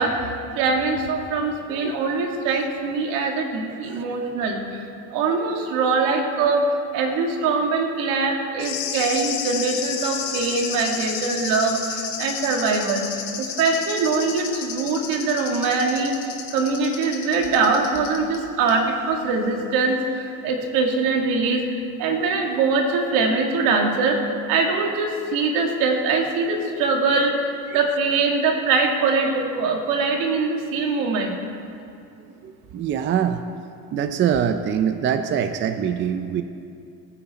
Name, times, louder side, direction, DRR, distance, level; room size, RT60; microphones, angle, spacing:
voice 1, 0.0-6.7 6.9-16.1 16.5-24.2 24.5-31.4, right 4 dB, 80° right, 2 dB, 2.0 m, -23 dB
sound 1, 8.6-18.4 18.7-18.8, left 7 dB, 80° left, 2.6 m, -31 dB
voice 2, 32.4-33.4 33.9-36.4, right 8 dB, 35° right, 9 dB, 0.5 m, -24 dB
19.0 x 9.7 x 4.2 m, 2.5 s
cardioid pair, 145°, 33 cm